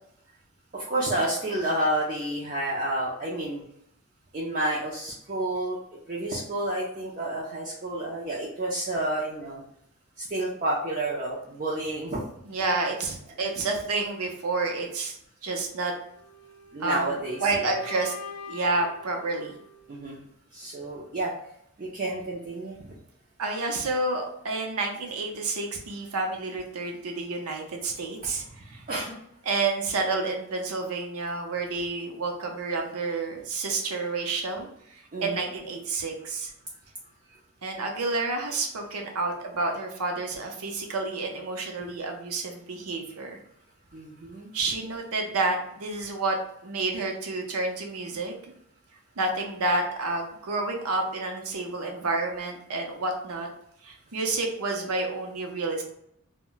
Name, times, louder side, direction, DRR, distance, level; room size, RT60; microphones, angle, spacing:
voice 1, 0.7-3.6 4.3-5.8 6.1-9.6 10.2-12.2 16.7-17.8 19.9-20.2 20.5-21.3 21.8-22.8 28.9-29.2 35.1-35.4 43.9-44.5, right 1 dB, 35° right, -5 dB, 0.4 m, -30 dB
voice 2, 12.5-15.2 15.4-15.9 16.8-18.1 18.5-19.5 23.4-28.8 29.4-36.5 37.6-43.4 44.5-46.4 46.6-48.3 49.2-53.5 53.8-55.8, right 3 dB, 80° right, 2 dB, 0.6 m, -29 dB
sound 1, 16.1-20.2, left 5 dB, 55° left, 0.3 m, -44 dB
2.1 x 2.1 x 3.7 m, 0.73 s
head